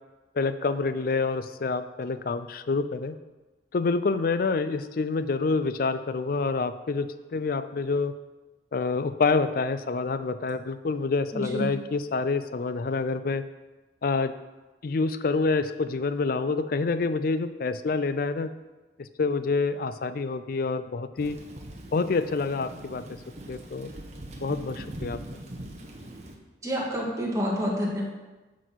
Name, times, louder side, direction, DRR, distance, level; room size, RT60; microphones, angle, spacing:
voice 1, 0.4-3.2 3.7-8.1 8.7-13.4 14.0-14.3 14.8-18.5 19.0-21.4 21.9-23.0 23.5-23.9 24.4-25.2, left 4 dB, 50° left, 12 dB, 0.4 m, -27 dB
voice 2, 11.3-11.7 26.6-28.0, equal, 15° right, -4 dB, 1.8 m, -28 dB
Thunder / Rain, 21.2-26.4, right 1 dB, 40° right, 1.0 m, -41 dB
9.2 x 4.1 x 6.2 m, 1.2 s
head